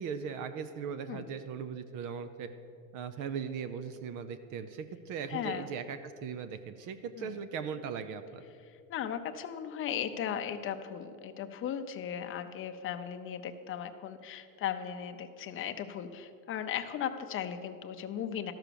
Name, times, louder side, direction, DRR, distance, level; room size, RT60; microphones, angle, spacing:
voice 1, 0.0-2.5 2.9-8.4, right 6 dB, 50° right, 11 dB, 0.6 m, -39 dB
voice 2, 5.3-5.7 7.2-7.3 8.9-18.5, left 9 dB, 30° left, 8 dB, 0.6 m, -37 dB
13.0 x 6.0 x 6.8 m, 2.5 s
cardioid pair, 140°, 41 cm